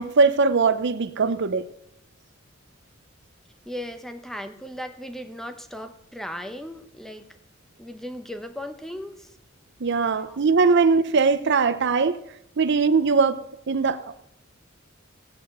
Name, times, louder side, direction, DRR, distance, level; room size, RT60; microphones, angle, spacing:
voice 1, 0.0-1.7 9.8-12.2 12.6-13.4 13.7-14.2, right 4 dB, 60° right, 0.6 m, -20 dB
voice 2, 3.7-7.4 7.8-9.3 10.2-10.4, equal, ahead, 0.9 m, -37 dB
16.0 x 8.4 x 6.7 m
head